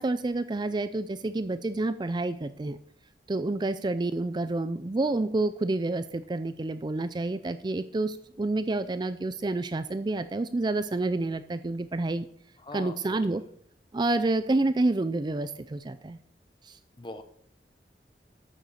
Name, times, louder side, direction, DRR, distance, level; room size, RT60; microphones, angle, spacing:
voice 1, 0.0-2.8 3.3-12.3 12.7-13.4 13.9-16.2 16.6-16.8, right 2 dB, 25° right, 12 dB, 0.4 m, -29 dB
voice 2, 12.6-13.3 17.0-17.2, left 2 dB, 30° left, 9 dB, 1.0 m, -42 dB
9.1 x 6.7 x 6.3 m, 0.64 s
head